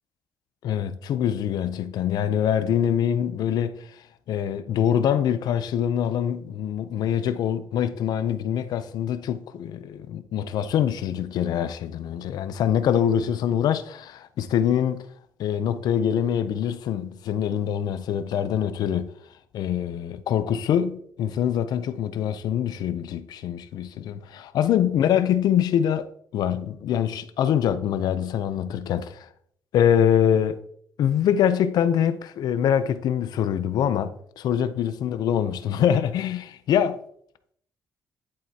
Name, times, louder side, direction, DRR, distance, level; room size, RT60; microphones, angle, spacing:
voice 1, 0.6-3.8 4.3-15.1 15.4-19.1 19.5-26.1 26.3-29.3 29.7-30.6 31.0-36.9, left 9 dB, 80° left, 0.6 m, -24 dB
10.5 x 7.7 x 2.8 m
cardioid pair, 110°, 7 cm